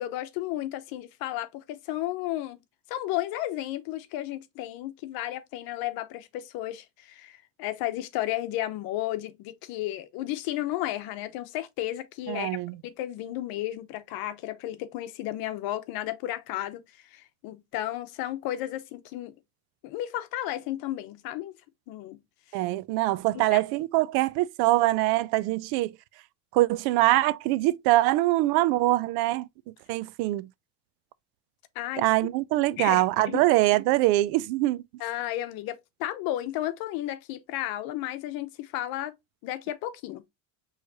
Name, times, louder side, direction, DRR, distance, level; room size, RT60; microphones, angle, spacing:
voice 1, 0.0-2.6 2.9-16.8 17.1-19.3 19.8-21.6 21.9-22.2 23.3-23.6 31.7-32.0 32.8-33.4 35.0-39.1 39.4-40.2, left 14 dB, 70° left, 0.9 m, -33 dB
voice 2, 12.3-12.8 22.5-25.9 26.5-29.5 29.9-30.5 32.0-34.8, right 17 dB, 75° right, 0.5 m, -23 dB
6.3 x 3.2 x 2.6 m
cardioid pair, 150°, 38 cm